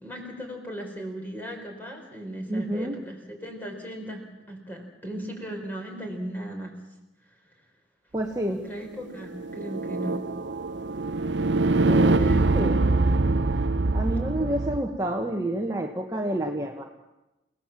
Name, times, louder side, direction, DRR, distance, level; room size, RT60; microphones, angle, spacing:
voice 1, 0.0-4.2 4.5-6.7 8.5-10.2 12.2-13.0, equal, 10° left, 2 dB, 4.7 m, -37 dB
voice 2, 2.5-3.0 8.1-8.6 11.8-12.8 13.9-16.8, right 1 dB, 20° right, 1 dB, 1.4 m, -29 dB
sound 1, 9.2-14.8, right 3 dB, 80° right, 0.8 m, -24 dB
29.5 x 18.0 x 7.5 m, 0.97 s
head